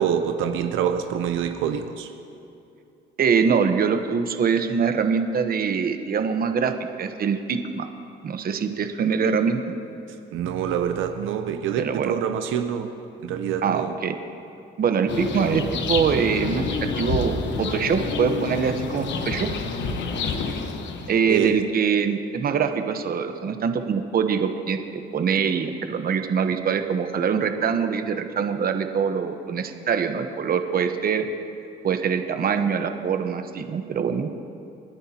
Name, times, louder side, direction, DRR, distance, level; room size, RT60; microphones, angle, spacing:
voice 1, 0.0-2.1 10.3-12.9 13.2-13.9 21.3-21.6, right 8 dB, 90° right, 7 dB, 0.7 m, -26 dB
voice 2, 3.2-7.9 8.2-9.6 11.8-12.2 13.6-14.2 14.8-15.6 15.9-19.5 21.1-31.3 31.8-34.3, right 6 dB, 50° right, 7 dB, 1.0 m, -24 dB
sound 1, 15.1-21.4, left 4 dB, 70° left, 1.1 m, -28 dB
29.5 x 10.0 x 2.9 m, 2.7 s
cardioid pair, 100°, 20 cm